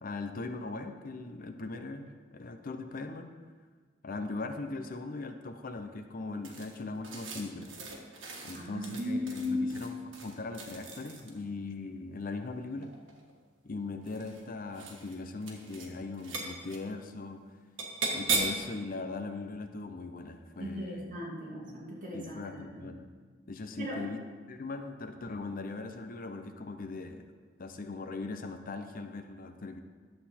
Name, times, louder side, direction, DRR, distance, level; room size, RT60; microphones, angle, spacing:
voice 1, 0.0-3.3 4.0-7.7 8.4-12.9 13.6-17.4 18.1-21.0 22.1-23.1 23.5-24.2 24.5-27.3 27.6-29.8, left 3 dB, 45° left, 7 dB, 0.6 m, -40 dB
sound 1, 6.4-11.5 12.7-13.3 14.0-14.4 14.7-15.1 15.4-15.9 16.1-16.8 17.8-18.7, right 3 dB, 80° right, 1.7 m, -37 dB
voice 2, 8.5-9.8 20.6-22.4 22.7-22.9 23.8-24.0, left 1 dB, 45° right, -5 dB, 2.8 m, -36 dB
11.5 x 7.7 x 4.3 m, 1.5 s
head